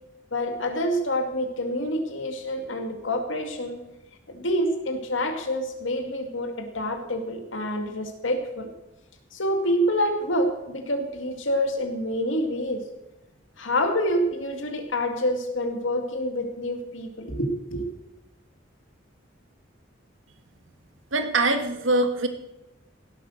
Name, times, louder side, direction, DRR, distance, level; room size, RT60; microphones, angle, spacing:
voice 1, 0.3-3.8 4.3-8.7 9.3-12.8 13.6-17.9, equal, 80° left, 5 dB, 2.3 m, -27 dB
voice 2, 21.1-22.3, right 2 dB, 85° right, 7 dB, 1.7 m, -23 dB
17.0 x 8.3 x 6.4 m, 0.94 s
head